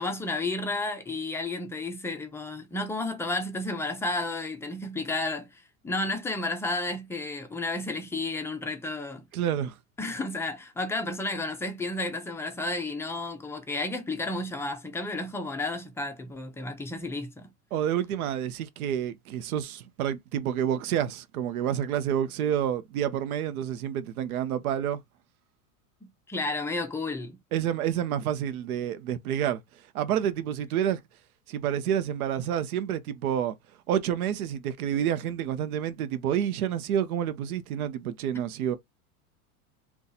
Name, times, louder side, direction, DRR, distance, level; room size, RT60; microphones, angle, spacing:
voice 1, 0.0-9.2 10.0-17.5 26.0-27.4, left 2 dB, 5° left, 0.4 m, -32 dB
voice 2, 9.3-9.7 17.7-25.0 27.5-29.6 29.9-31.0 31.5-33.6 33.9-38.8, right 10 dB, 85° right, 0.7 m, -29 dB
2.7 x 2.3 x 3.9 m
supercardioid pair, 120°, 42 cm